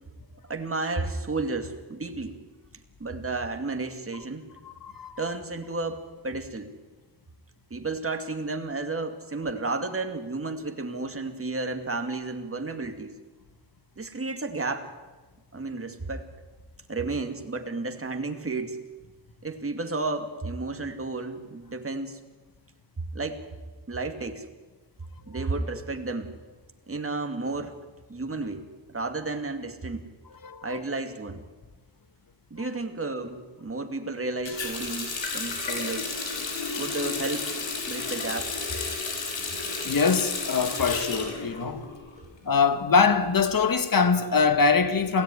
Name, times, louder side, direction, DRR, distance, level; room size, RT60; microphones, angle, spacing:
voice 1, 0.5-2.4 3.0-4.5 5.2-6.7 7.7-13.2 14.0-14.9 15.5-16.3 16.9-18.8 19.4-22.2 23.1-23.4 23.9-24.5 25.3-26.3 26.9-27.8 28.1-28.6 28.9-30.0 30.6-31.4 32.5-36.1 36.8-37.5 37.9-38.5, right 3 dB, 30° right, 2.4 m, -32 dB
voice 2, 4.6-5.2 30.4-30.8 39.8-41.8 42.5-45.2, left 5 dB, 50° left, 1.9 m, -23 dB
Water tap faucet, 34.5-42.2 42.5-43.6, left 4 dB, 90° left, 5.7 m, -32 dB
28.0 x 17.5 x 9.7 m
wide cardioid pair, 145°, 44 cm